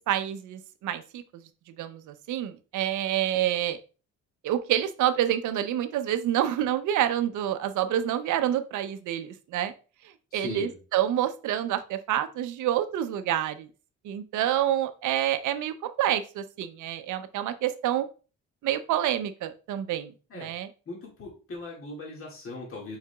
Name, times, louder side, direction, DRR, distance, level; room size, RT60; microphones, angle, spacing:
voice 1, 0.1-1.2 1.8-3.8 4.4-9.7 10.3-13.7 14.0-18.1 18.6-20.7, right 11 dB, 80° right, 11 dB, 0.6 m, -28 dB
voice 2, 10.3-10.7 20.3-20.5 20.9-23.0, left 2 dB, 45° left, -2 dB, 2.0 m, -39 dB
4.9 x 4.7 x 2.3 m, 0.35 s
cardioid pair, 90°, 30 cm